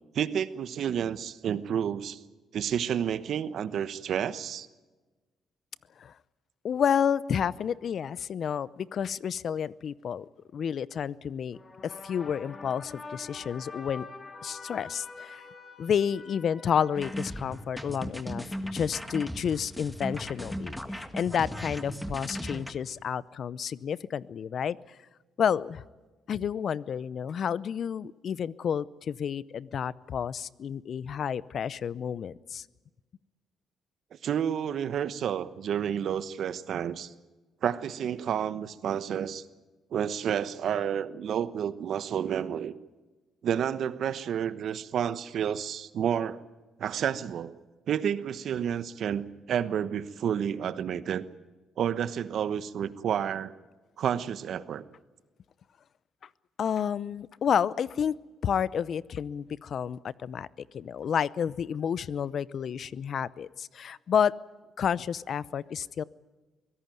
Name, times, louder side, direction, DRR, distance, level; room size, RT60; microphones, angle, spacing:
voice 1, 0.1-2.2 2.5-4.7 34.2-37.1 37.6-39.4 39.9-42.7 43.4-46.4 46.8-47.6 47.9-51.2 51.8-53.5 54.0-54.8, right 9 dB, 65° right, 14 dB, 1.1 m, -30 dB
voice 2, 6.6-11.6 11.8-14.0 14.4-15.4 15.8-18.5 18.7-25.0 25.4-25.8 26.3-32.6 56.6-58.1 58.4-64.3 64.8-66.0, left 8 dB, 60° left, 20 dB, 0.6 m, -30 dB
sound 1, 11.5-17.9, left 4 dB, 35° left, 3.1 m, -46 dB
sound 2, 17.0-22.7, equal, 5° left, 1.8 m, -37 dB
23.5 x 17.0 x 9.2 m, 1.2 s
cardioid pair, 90°, 0 cm